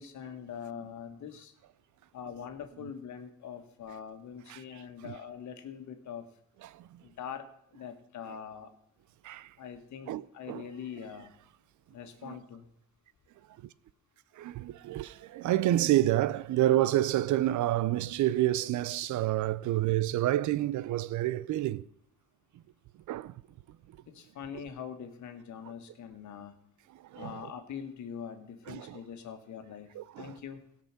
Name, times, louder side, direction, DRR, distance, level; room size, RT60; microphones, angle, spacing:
voice 1, 0.0-1.5 2.1-6.2 7.0-7.5 7.7-8.7 9.6-11.3 11.9-12.7 24.1-26.5 27.1-29.9 30.2-30.6, left 7 dB, 70° left, 1.7 m, -43 dB
voice 2, 4.5-5.1 6.6-7.0 9.2-9.5 10.1-10.7 12.2-12.4 14.4-21.9 23.1-23.4 26.9-27.5 28.7-29.0 30.0-30.3, right 14 dB, 75° right, 0.6 m, -29 dB
16.5 x 6.0 x 6.0 m
cardioid pair, 90°, 30 cm